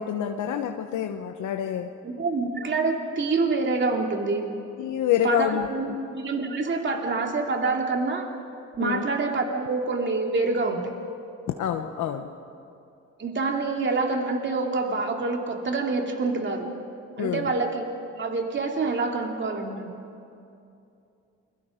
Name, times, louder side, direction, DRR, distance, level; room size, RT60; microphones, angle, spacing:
voice 1, 0.0-1.9 4.8-6.0 8.8-9.1 11.6-12.3 17.2-17.5, left 9 dB, 80° left, 5 dB, 1.1 m, -27 dB
voice 2, 2.0-4.6 5.2-8.3 8.8-10.8 13.2-16.7 17.2-17.9 18.2-19.9, right 3 dB, 40° right, 2 dB, 2.8 m, -26 dB
28.0 x 23.5 x 5.1 m, 2.6 s
cardioid pair, 90°, 30 cm